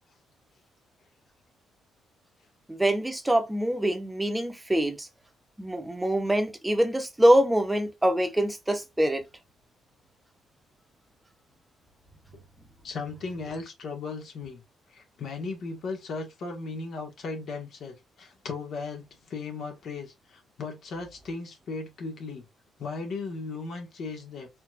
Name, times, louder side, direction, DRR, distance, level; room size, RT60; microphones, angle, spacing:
voice 1, 2.7-5.1 5.6-9.2, right 1 dB, 10° right, 0.9 m, -24 dB
voice 2, 12.8-14.6 14.9-22.4 22.8-24.5, left 4 dB, 65° left, 1.7 m, -36 dB
4.3 x 2.9 x 2.5 m
cardioid pair, 90°, 0 cm